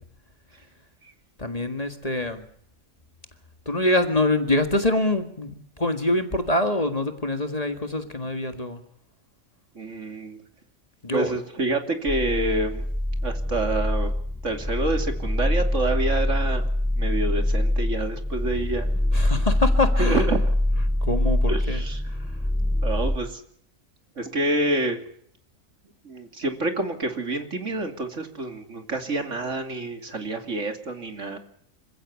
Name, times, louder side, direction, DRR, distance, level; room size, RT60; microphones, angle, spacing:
voice 1, 1.4-2.4 3.7-8.8 11.0-11.4 19.1-20.3 21.0-21.8 22.1-22.2, left 1 dB, 30° left, 7 dB, 1.9 m, -25 dB
voice 2, 9.7-10.4 11.1-12.8 13.2-14.1 14.4-16.6 17.0-18.9 20.0-20.4 21.5-22.0 22.3-22.4 22.8-23.4 24.2-25.0 26.0-31.4, right 2 dB, 60° right, 6 dB, 3.0 m, -27 dB
sound 1, 12.1-23.2, left 1 dB, ahead, 0.5 m, -24 dB
26.5 x 15.5 x 8.4 m, 0.67 s
omnidirectional pair, 1.4 m